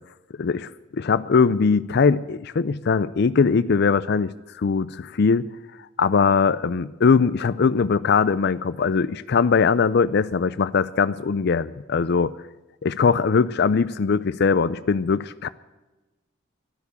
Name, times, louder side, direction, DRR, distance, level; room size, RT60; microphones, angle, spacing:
voice 1, 0.4-5.4 5.8-12.3 12.8-15.5, left 5 dB, 55° left, 14 dB, 0.4 m, -21 dB
13.0 x 11.0 x 8.1 m, 1.1 s
head